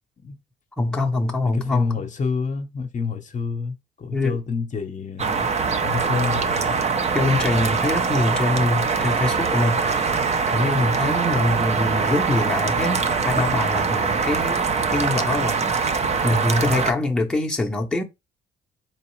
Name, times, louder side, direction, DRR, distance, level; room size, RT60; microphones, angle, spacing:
voice 1, 0.8-2.0 4.1-4.4 7.1-10.1 10.5-14.6 14.9-15.9 16.2-18.0, left 2 dB, 5° left, 0.8 m, -24 dB
voice 2, 1.4-5.4 5.8-6.8, left 5 dB, 40° left, 0.8 m, -28 dB
sound 1, 5.2-16.9, right 5 dB, 35° right, 0.6 m, -23 dB
4.1 x 3.1 x 3.1 m
cardioid pair, 90°, 20 cm